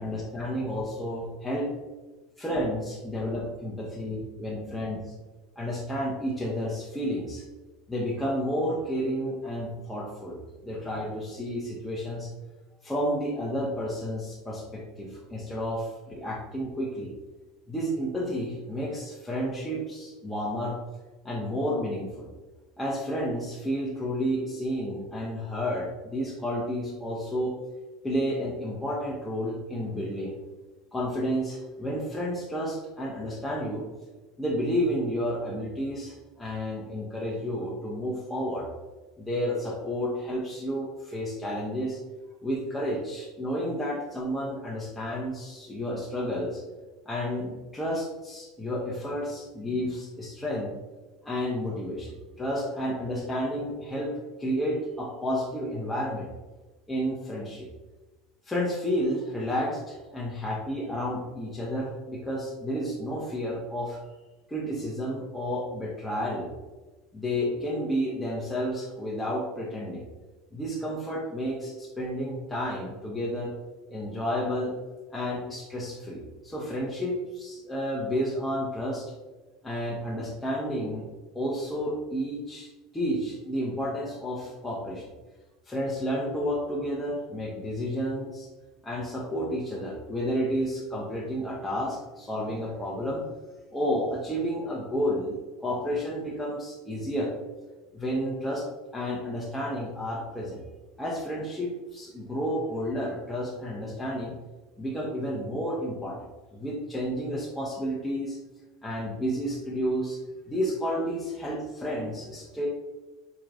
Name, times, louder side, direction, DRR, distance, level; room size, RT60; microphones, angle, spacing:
voice 1, 0.0-1.7 2.4-5.0 5.6-7.4 7.9-12.3 12.8-17.1 17.7-20.8 21.2-22.3 22.8-27.5 28.0-30.3 30.9-33.8 34.4-38.7 39.2-42.0 42.4-46.6 47.1-50.7 51.2-56.3 56.9-57.7 58.5-64.0 64.5-66.5 67.1-70.0 70.5-73.5 73.9-74.7 75.1-79.1 79.6-81.1 81.3-85.1 85.7-88.5 88.8-93.2 93.7-97.3 97.9-98.7 98.9-100.6 101.0-104.3 104.8-108.4 108.8-110.2 110.5-112.7, equal, 10° left, -5 dB, 0.8 m, -31 dB
4.6 x 2.9 x 2.6 m, 1.2 s
hypercardioid pair, 90°, 0 cm